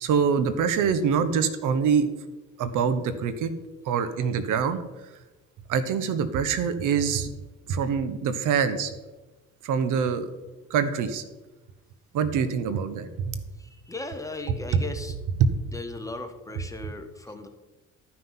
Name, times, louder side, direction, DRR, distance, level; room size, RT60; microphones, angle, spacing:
voice 1, 0.0-2.1 2.6-3.5 3.8-5.1 5.7-7.3 7.7-8.9 9.6-10.3 10.7-11.2 12.1-13.4 15.4-15.5, right 6 dB, 65° right, 12 dB, 1.0 m, -25 dB
voice 2, 13.5-15.2 15.4-17.5, left 2 dB, 10° left, 6 dB, 1.1 m, -37 dB
12.5 x 5.8 x 5.6 m, 1.1 s
cardioid pair, 115°, 34 cm